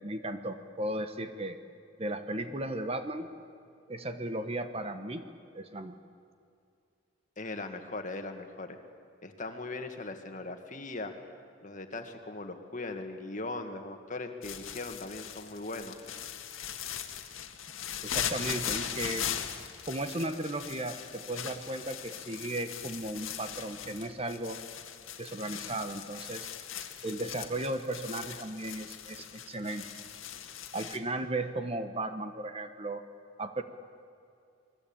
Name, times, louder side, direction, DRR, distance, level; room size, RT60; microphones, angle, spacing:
voice 1, 0.0-1.6 2.0-3.3 3.9-5.2 5.5-5.9 18.0-19.3 19.9-24.6 25.2-26.5 27.0-29.9 30.7-33.0 33.4-33.6, right 1 dB, 30° right, 8 dB, 1.2 m, -35 dB
voice 2, 7.4-8.8 9.2-11.1 11.6-16.0, left 2 dB, 35° left, 6 dB, 1.9 m, -39 dB
sound 1, 14.4-31.0, left 9 dB, 70° left, 1.9 m, -39 dB
28.0 x 21.5 x 8.8 m, 2.4 s
head